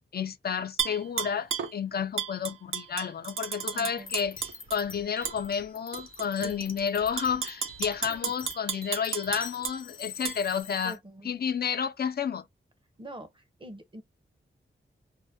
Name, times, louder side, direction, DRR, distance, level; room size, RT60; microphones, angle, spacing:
voice 1, 0.1-4.4 4.7-11.0 11.2-12.5, left 7 dB, 50° left, 0.4 m, -31 dB
Tap / Glass, 0.8-1.7 2.2-4.8 5.2-5.4 5.9-6.5 7.0-9.8 10.2-10.4, right 7 dB, 90° right, 0.5 m, -33 dB
voice 2, 3.7-4.2 6.3-6.8 8.1-8.3 10.8-11.3 13.0-14.0, right 1 dB, 25° right, 0.7 m, -45 dB
sound 1, 4.0-11.0, left 5 dB, 80° left, 0.9 m, -44 dB
2.6 x 2.1 x 3.4 m
wide cardioid pair, 100°, 20 cm